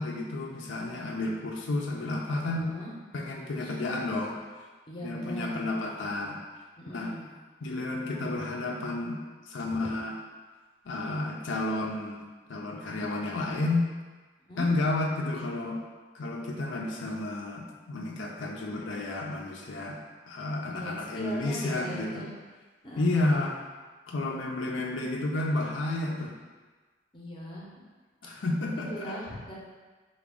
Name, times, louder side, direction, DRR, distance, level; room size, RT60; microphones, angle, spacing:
voice 1, 0.0-2.7 3.1-4.4 5.0-6.4 6.9-7.1 7.6-9.2 9.5-10.2 10.9-12.2 12.5-13.9 14.6-15.8 16.1-20.0 20.3-22.3 23.0-23.6 24.1-26.3 28.2-29.2, left 2 dB, 85° left, 0 dB, 0.5 m, -31 dB
voice 2, 2.5-2.9 3.6-3.7 4.9-5.7 6.8-7.3 9.6-9.9 14.5-14.7 20.7-22.3 22.8-23.4 27.1-27.7 28.9-29.5, equal, 25° left, -3 dB, 0.6 m, -40 dB
4.8 x 2.2 x 3.5 m, 1.4 s
head